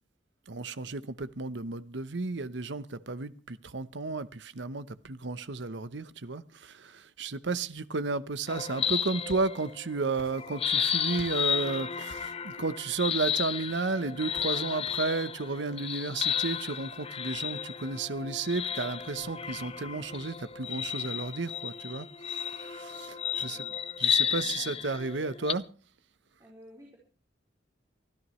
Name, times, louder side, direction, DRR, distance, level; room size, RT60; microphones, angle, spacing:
voice 1, 0.5-23.7 24.0-25.7, right 3 dB, 75° right, 0.9 m, -33 dB
sound 1, 8.5-9.9 10.3-25.5, left 8 dB, 30° left, 0.6 m, -33 dB
sound 2, 9.3-9.8 10.2-10.8 11.2-11.5 12.1-12.5, left 1 dB, 50° left, 1.5 m, -51 dB
voice 2, 23.4-23.7 24.4-24.7 26.4-27.0, equal, 20° right, 4.4 m, -53 dB
24.0 x 14.0 x 3.2 m
head